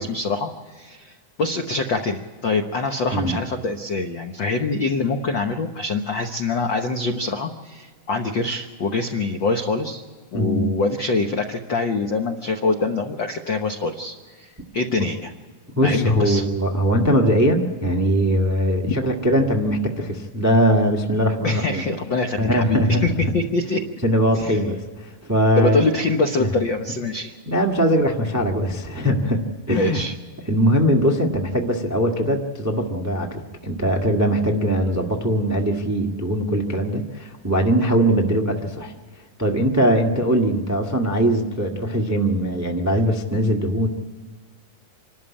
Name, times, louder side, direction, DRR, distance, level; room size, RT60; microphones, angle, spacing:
voice 1, 0.0-10.0 10.3-15.3 15.8-16.4 21.4-23.8 24.4-24.6 25.6-27.3 29.7-30.1, left 3 dB, 85° left, 4 dB, 1.0 m, -24 dB
voice 2, 10.3-10.7 15.8-21.8 22.4-23.3 24.0-25.8 26.4-26.5 27.5-30.0 30.4-38.9 39.4-43.9, equal, 25° right, 1 dB, 0.4 m, -21 dB
26.5 x 12.5 x 8.7 m, 1.5 s
omnidirectional pair, 3.8 m